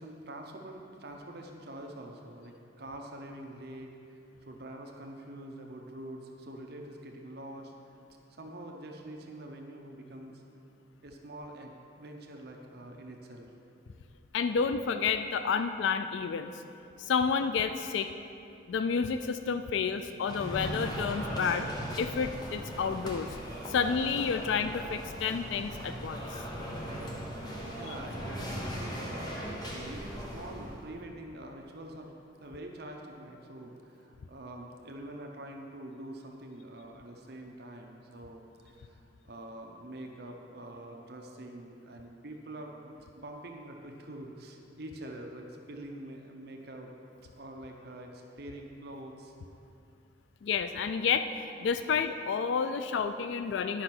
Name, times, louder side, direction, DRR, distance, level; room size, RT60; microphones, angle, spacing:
voice 1, 0.0-7.7 8.3-10.4 11.0-13.5 27.7-32.1 32.4-49.3, right 1 dB, 55° right, 2 dB, 0.8 m, -45 dB
voice 2, 14.3-16.5 17.0-18.1 18.7-21.7 22.0-23.3 23.7-26.4 50.4-51.3 51.6-53.8, left 6 dB, 80° left, 9 dB, 0.3 m, -30 dB
sound 1, 20.2-30.9, equal, 20° left, 1.0 m, -38 dB
10.0 x 5.4 x 6.0 m, 2.7 s
head